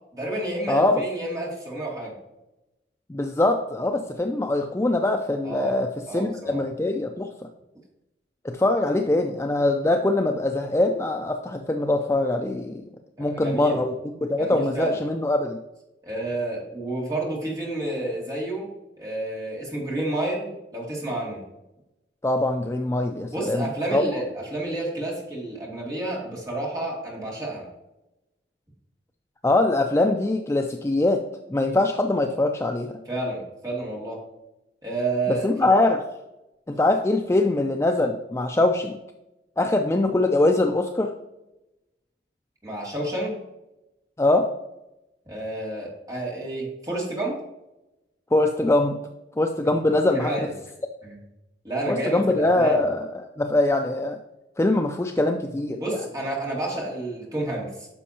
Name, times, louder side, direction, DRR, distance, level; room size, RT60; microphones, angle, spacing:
voice 1, 0.1-2.1 5.4-5.8 6.1-6.6 13.2-13.8 14.4-15.0 16.0-18.7 19.0-21.4 23.3-27.7 33.1-34.2 34.8-35.7 42.6-43.4 45.3-47.4 50.1-50.5 51.0-51.2 51.6-52.8 55.8-57.9, right 2 dB, 20° right, -4 dB, 2.4 m, -30 dB
voice 2, 0.7-1.0 3.1-7.3 8.4-12.8 13.2-13.9 14.2-15.6 22.2-24.0 29.4-31.2 31.5-32.9 35.3-36.0 36.7-39.0 39.6-41.1 44.2-44.5 48.3-49.0 49.4-50.5 51.9-53.0 53.4-54.2 54.6-56.0, left 2 dB, 15° left, 4 dB, 0.4 m, -22 dB
10.0 x 6.3 x 2.8 m, 0.95 s
head